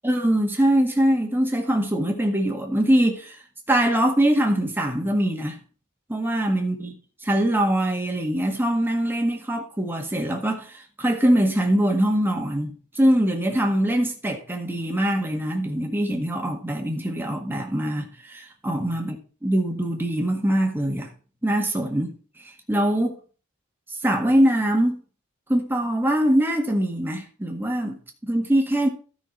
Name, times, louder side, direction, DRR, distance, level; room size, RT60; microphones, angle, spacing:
voice 1, 0.0-3.4 3.7-5.6 6.1-6.9 7.2-21.1 21.4-22.1 22.7-23.2 24.0-25.0 25.5-28.9, right 1 dB, 10° right, 1.8 m, -23 dB
12.5 x 6.0 x 4.6 m
head